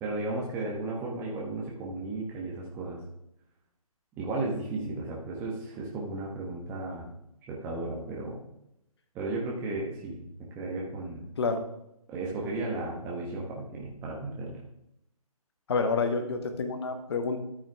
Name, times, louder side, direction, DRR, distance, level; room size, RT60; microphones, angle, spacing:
voice 1, 0.0-3.0 4.2-7.1 7.5-8.4 9.1-10.2 10.5-11.2 12.1-14.6, right 2 dB, 10° right, -3 dB, 1.2 m, -34 dB
voice 2, 15.7-17.4, left 4 dB, 45° left, 6 dB, 1.3 m, -28 dB
13.0 x 6.3 x 3.5 m, 0.81 s
figure-of-eight pair, 150°, 19 cm